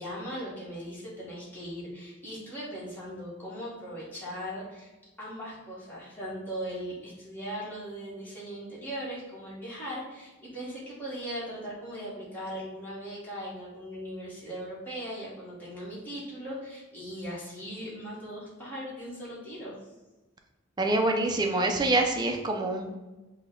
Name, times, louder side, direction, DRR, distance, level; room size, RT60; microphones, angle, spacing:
voice 1, 0.0-4.9 5.2-19.8, equal, 10° left, -8 dB, 1.4 m, -39 dB
voice 2, 20.8-22.9, right 2 dB, 20° right, 3 dB, 0.5 m, -26 dB
5.2 x 2.3 x 3.7 m, 1.1 s
head